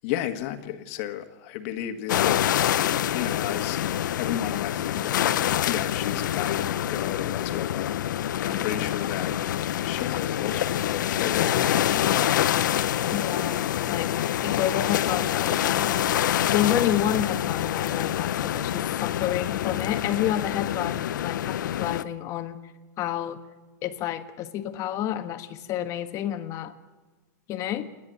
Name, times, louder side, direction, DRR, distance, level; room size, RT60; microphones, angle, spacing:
voice 1, 0.0-5.2 5.7-9.4 9.8-12.6, left 11 dB, 50° left, 1.7 m, -33 dB
sound 1, 2.1-22.0, left 11 dB, 85° left, 0.8 m, -26 dB
voice 2, 13.1-14.2 14.4-15.9 16.5-22.6 23.0-23.4 23.8-26.7 27.5-27.9, left 11 dB, 30° left, 1.4 m, -29 dB
29.0 x 10.5 x 9.3 m
supercardioid pair, 155°, 10 cm